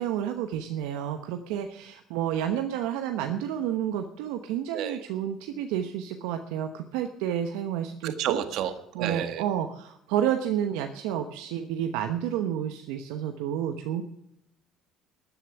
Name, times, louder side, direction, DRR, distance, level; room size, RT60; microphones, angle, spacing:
voice 1, 0.0-8.4 8.9-14.0, right 10 dB, 85° right, 7 dB, 1.0 m, -30 dB
voice 2, 8.0-9.4, right 10 dB, 70° right, 9 dB, 1.5 m, -31 dB
13.0 x 7.1 x 9.7 m, 0.81 s
supercardioid pair, 85°, 0 cm